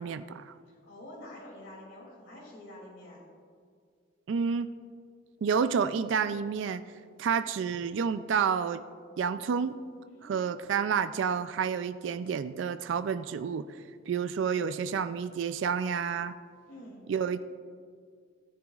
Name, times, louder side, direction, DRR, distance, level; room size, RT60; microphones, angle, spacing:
voice 1, 0.0-0.5 4.3-4.7 5.4-6.8 7.2-8.8 9.2-9.8 10.2-13.7 14.1-16.3 17.1-17.4, right 6 dB, 70° right, 12 dB, 0.3 m, -29 dB
voice 2, 0.7-3.2 10.0-10.4 16.7-17.0, left 1 dB, 80° left, -4 dB, 2.7 m, -47 dB
15.5 x 10.0 x 2.4 m, 2.1 s
head